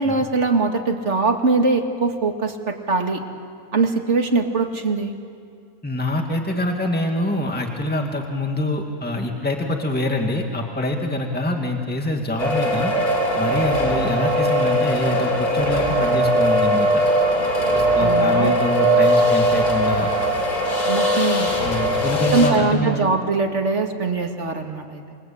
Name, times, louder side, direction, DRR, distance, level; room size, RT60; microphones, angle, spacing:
voice 1, 0.0-3.2 3.7-5.1 18.0-18.6 20.9-21.5 22.3-25.0, right 3 dB, 50° right, 4 dB, 2.5 m, -22 dB
voice 2, 5.8-12.9 13.4-17.0 17.7-20.1 21.6-23.0, left 1 dB, 5° left, 2 dB, 2.1 m, -25 dB
sound 1, 12.4-22.5, equal, 90° left, 4.3 m, -20 dB
29.5 x 22.5 x 8.7 m, 2.3 s
omnidirectional pair, 1.5 m